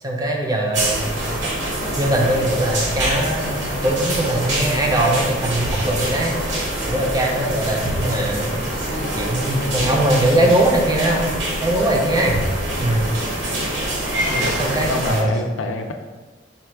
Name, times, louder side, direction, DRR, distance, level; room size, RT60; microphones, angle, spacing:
voice 1, 0.0-1.3 2.0-6.4 6.9-8.5 9.1-11.3 11.6-12.4 12.8-13.1 14.5-15.3, right 1 dB, 20° right, 0 dB, 0.4 m, -21 dB
sound 1, 0.7-15.2, right 1 dB, 65° right, 0.8 m, -25 dB
voice 2, 9.5-10.0 10.4-10.6 14.3-15.9, left 2 dB, 85° left, 3 dB, 0.5 m, -28 dB
4.2 x 2.3 x 4.5 m, 1.3 s
head